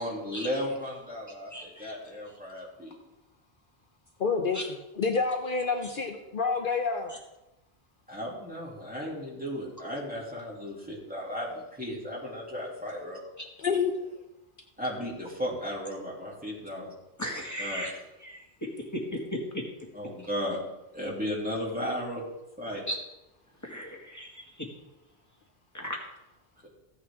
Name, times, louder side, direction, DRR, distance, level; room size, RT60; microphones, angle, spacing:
voice 1, 0.0-3.0 8.1-13.2 14.8-16.9 17.6-17.9 19.9-20.6 20.9-22.2 22.6-22.8 26.6-26.7, equal, 10° right, -5 dB, 2.9 m, -35 dB
voice 2, 1.5-1.9 4.5-4.6 17.2-17.9 18.2-18.4 18.9-19.6 22.9-23.0 23.6-24.3 25.7-26.0, equal, 15° left, -1 dB, 2.0 m, -35 dB
voice 3, 4.2-4.6 4.9-7.1 13.6-14.0, left 5 dB, 60° left, 4 dB, 0.9 m, -28 dB
15.5 x 8.6 x 3.6 m, 0.99 s
omnidirectional pair, 1.0 m